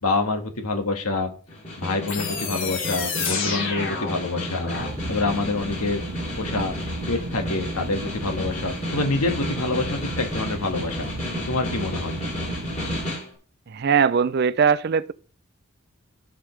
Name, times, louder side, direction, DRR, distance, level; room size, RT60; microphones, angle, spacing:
voice 1, 0.0-1.3 1.8-4.7 5.1-6.0 6.4-6.7 7.1-11.1 11.4-12.2, left 3 dB, 90° left, 1.7 m, -26 dB
Snare drum, 1.5-13.3, left 1 dB, 30° left, 3.2 m, -33 dB
sound 1, 2.1-4.9, left 4 dB, 60° left, 3.0 m, -29 dB
sound 2, 4.8-13.1, right 1 dB, 80° right, 1.3 m, -34 dB
voice 2, 13.7-15.1, right 6 dB, 45° right, 0.4 m, -20 dB
14.5 x 5.3 x 3.2 m
head